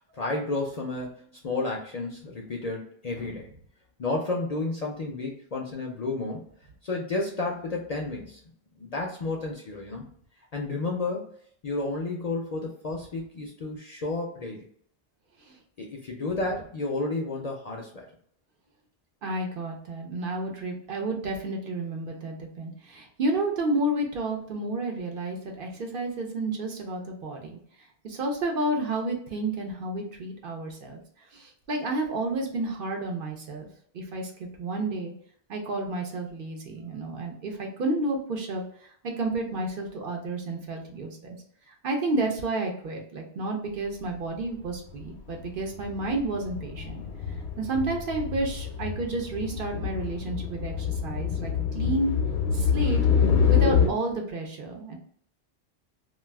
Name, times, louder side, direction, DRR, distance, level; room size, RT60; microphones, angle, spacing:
voice 1, 0.0-3.5 4.0-6.4 6.8-8.4 8.8-10.0 10.5-11.2 11.6-14.7 15.8-18.1, left 2 dB, 50° left, -1 dB, 0.5 m, -31 dB
voice 2, 19.2-27.6 28.0-31.0 31.3-33.7 33.9-35.1 35.5-38.6 39.2-41.4 41.7-47.0 47.6-52.1 52.5-53.0 53.5-55.0, right 2 dB, 60° right, 1 dB, 0.8 m, -31 dB
sound 1, 44.7-45.0 45.3-53.9, left 7 dB, 75° left, 0.8 m, -26 dB
2.4 x 2.3 x 3.3 m, 0.62 s
omnidirectional pair, 1.1 m